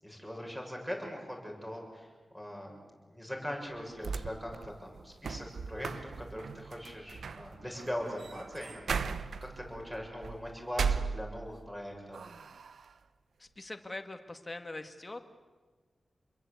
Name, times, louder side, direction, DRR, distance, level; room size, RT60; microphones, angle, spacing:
voice 1, 0.0-2.8 3.0-12.2, equal, 5° right, 1 dB, 7.0 m, -41 dB
sound 1, 3.7-11.7 12.1-12.9, right 5 dB, 80° right, 0.9 m, -38 dB
voice 2, 13.4-15.2, left 2 dB, 20° left, 6 dB, 1.9 m, -42 dB
27.5 x 22.0 x 8.4 m, 1.3 s
wide cardioid pair, 120°, 0 cm